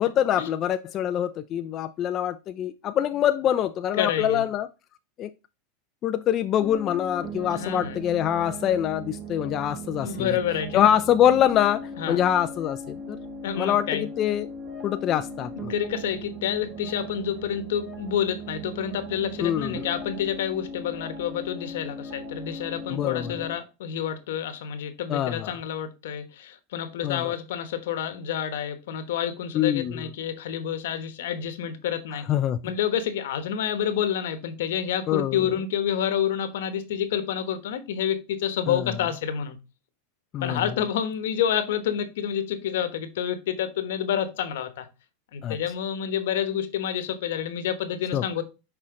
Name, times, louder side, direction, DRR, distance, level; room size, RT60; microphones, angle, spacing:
voice 1, 0.0-4.7 5.2-5.3 6.0-10.4 10.7-13.2 13.6-14.5 14.8-15.7 19.4-19.8 22.9-23.3 25.1-25.5 27.0-27.3 29.5-30.0 32.3-32.6 35.1-35.4 38.7-38.9 40.3-40.6 45.4-45.6 48.1-48.2, left 10 dB, 35° left, 0.4 m, -24 dB
voice 2, 4.0-4.4 7.5-8.0 10.0-10.9 12.0-12.2 13.4-14.0 15.7-32.2 32.6-39.6 40.4-44.9 45.3-48.4, left 9 dB, 80° left, 1.2 m, -28 dB
sound 1, 6.6-23.5, right 1 dB, 25° right, 2.0 m, -38 dB
6.3 x 4.4 x 3.7 m
supercardioid pair, 135°, 0 cm